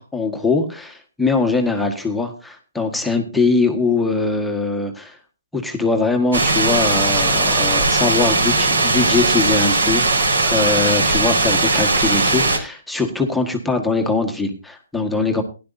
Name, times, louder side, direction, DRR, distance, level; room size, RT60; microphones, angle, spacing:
voice 1, 0.0-5.2 5.5-10.0 10.4-15.4, left 3 dB, 5° left, 2 dB, 1.6 m, -21 dB
sound 1, 6.3-12.6, right 3 dB, 70° right, 4.7 m, -18 dB
17.0 x 11.5 x 2.7 m, 0.33 s
figure-of-eight pair, 140°, 0 cm